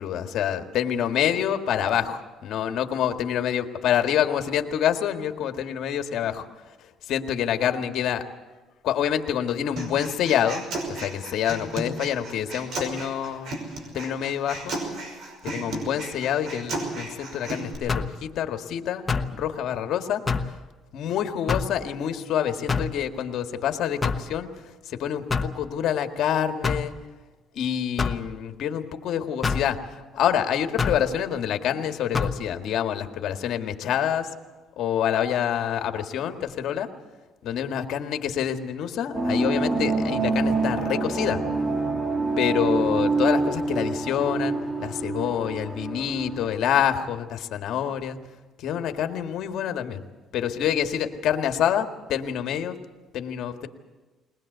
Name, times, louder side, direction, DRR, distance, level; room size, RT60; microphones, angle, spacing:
voice 1, 0.0-6.5 7.1-8.2 8.8-13.6 13.9-14.7 15.4-19.0 19.3-20.2 20.5-20.6 20.9-24.5 24.9-26.9 27.6-34.3 34.8-36.9 37.4-41.4 42.4-48.2 48.6-50.0 50.3-52.8 53.1-53.7, left 9 dB, 65° left, 7 dB, 1.7 m, -27 dB
Human voice, 9.8-17.7, right 2 dB, 60° right, 5.7 m, -34 dB
sound 1, 17.9-18.2 19.1-19.4 20.3-20.6 21.5-21.8 22.7-23.0 24.0-24.3 25.3-25.6 26.6-26.9 28.0-28.2 29.4-29.7 30.8-31.0 32.1-32.4, left 4 dB, 25° left, 1.1 m, -25 dB
sound 2, 39.1-46.5, right 3 dB, 10° right, 2.4 m, -26 dB
21.5 x 20.0 x 8.0 m, 1.2 s
cardioid pair, 125°, 0 cm